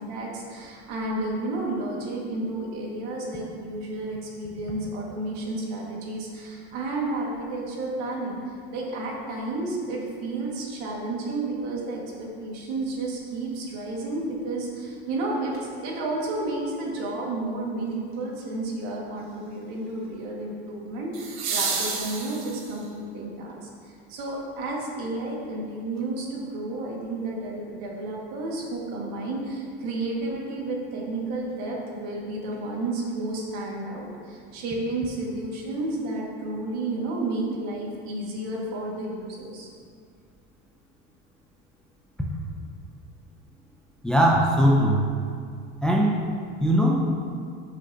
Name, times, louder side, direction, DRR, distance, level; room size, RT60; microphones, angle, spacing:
voice 1, 0.0-15.5 15.8-39.7, right 2 dB, 65° right, -3 dB, 2.0 m, -31 dB
sound 1, 15.5-15.6 21.1-22.9 25.1-25.2, right 5 dB, 45° right, 1.2 m, -30 dB
voice 2, 44.0-45.1 45.8-46.2 46.6-47.0, equal, 5° left, -2 dB, 0.5 m, -20 dB
13.0 x 6.4 x 2.9 m, 2.2 s
cardioid pair, 160°, 30 cm